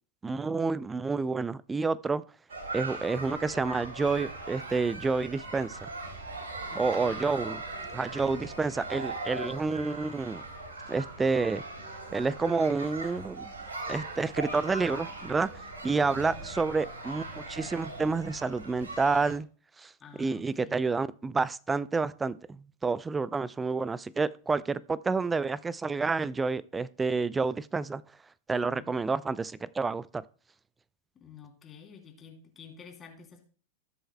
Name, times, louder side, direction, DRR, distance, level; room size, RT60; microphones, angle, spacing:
voice 1, 0.2-2.2 2.7-5.9 6.8-7.6 7.9-10.4 10.9-11.6 12.1-13.5 13.9-15.5 15.8-19.5 19.8-19.9 20.2-28.0 28.5-30.2, right 4 dB, 15° right, 0.4 m, -29 dB
sound 1, 2.5-19.4, right 2 dB, 70° right, 3.2 m, -40 dB
voice 2, 6.7-7.3 16.3-16.5 20.0-20.8 28.7-29.0 31.1-33.5, left 6 dB, 25° left, 3.1 m, -50 dB
19.5 x 7.9 x 2.2 m
figure-of-eight pair, 90°, 0 cm